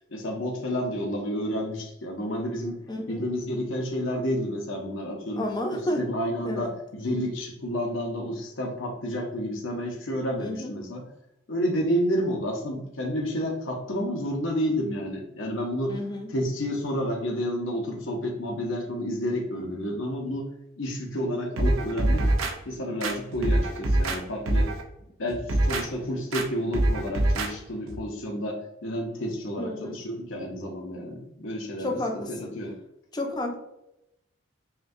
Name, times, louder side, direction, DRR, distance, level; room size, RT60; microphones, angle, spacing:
voice 1, 0.1-2.8 3.1-5.4 5.7-11.0 11.5-16.0 16.3-20.5 20.8-22.3 22.6-24.7 25.2-31.9 32.3-32.7, equal, 65° left, 0 dB, 0.7 m, -30 dB
voice 2, 2.9-3.2 5.4-6.1 6.4-6.7 10.4-10.7 15.9-16.3 29.6-30.0 31.8-32.5 33.1-33.6, left 1 dB, 20° left, 2 dB, 0.6 m, -31 dB
sound 1, 21.6-22.5 23.0-24.2 24.5-24.8 25.3-25.8 26.3-26.5 26.7-27.5 27.9-28.0, right 1 dB, 80° right, 0.6 m, -24 dB
5.7 x 2.2 x 2.6 m, 0.86 s
head